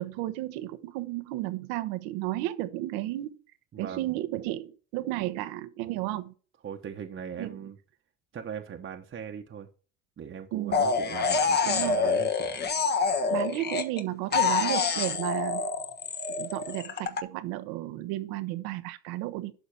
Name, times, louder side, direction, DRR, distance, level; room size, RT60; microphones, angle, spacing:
voice 1, 0.0-3.3 3.8-6.3 7.4-7.6 10.5-10.8 11.6-12.0 13.3-15.6 16.4-19.5, right 16 dB, 80° right, 1.2 m, -33 dB
voice 2, 3.7-4.1 6.6-7.8 8.3-9.7 10.2-12.6, right 7 dB, 35° right, 1.2 m, -40 dB
sound 1, 10.7-14.0 14.3-17.2, left 5 dB, 30° left, 1.2 m, -26 dB
12.0 x 4.1 x 5.8 m
supercardioid pair, 95°, 35 cm